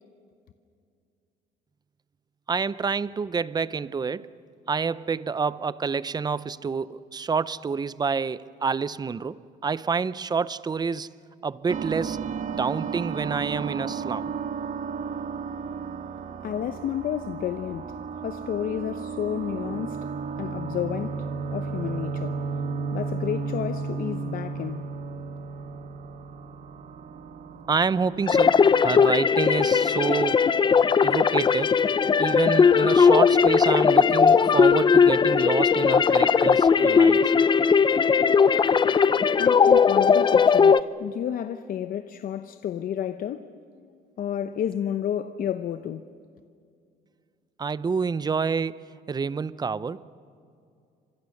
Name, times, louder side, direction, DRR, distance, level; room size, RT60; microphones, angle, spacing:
voice 1, 2.5-4.3 4.7-11.1 11.4-14.3 27.7-30.5 31.0-31.8 32.2-37.3 47.6-50.0, right 5 dB, 25° right, 0.7 m, -28 dB
sound 1, 11.7-28.8, right 5 dB, 50° right, 1.4 m, -33 dB
voice 2, 16.4-20.1 20.4-21.2 21.5-22.4 22.9-24.9 39.4-43.5 44.2-46.1, left 9 dB, 55° left, 0.9 m, -31 dB
sound 2, 28.3-40.8, left 6 dB, 30° left, 0.6 m, -18 dB
29.5 x 25.5 x 6.6 m
cardioid pair, 110°, 17 cm